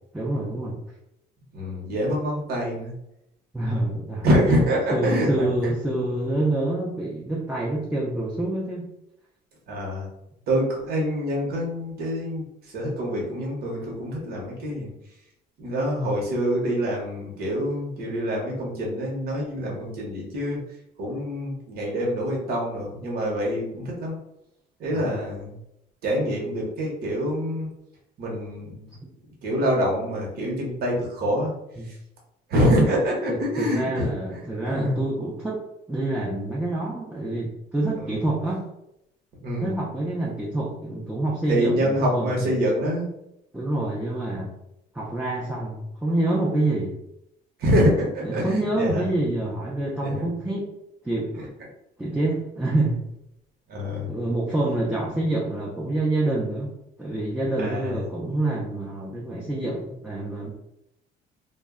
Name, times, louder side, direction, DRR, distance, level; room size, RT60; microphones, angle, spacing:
voice 1, 0.1-0.8 3.5-4.3 4.9-8.9 24.9-25.2 31.8-31.9 33.3-35.6 35.9-38.6 39.6-42.7 43.5-44.5 44.9-47.0 48.2-50.7 51.0-51.4 52.0-53.0 54.1-56.7 57.0-60.5, right 2 dB, 5° right, -5 dB, 0.5 m, -27 dB
voice 2, 1.5-2.9 4.2-5.7 9.7-10.1 10.5-14.9 15.6-20.6 21.0-24.1 24.8-25.6 26.0-27.7 28.2-28.9 29.4-31.5 31.8-32.0 32.5-35.0 38.0-38.3 39.4-39.8 41.5-43.1 47.6-49.1 50.0-50.3 51.4-51.5 53.7-54.1 57.6-58.0 59.7-59.8, equal, 65° right, -2 dB, 0.9 m, -26 dB
2.1 x 2.1 x 3.5 m, 0.82 s
cardioid pair, 110°, 17 cm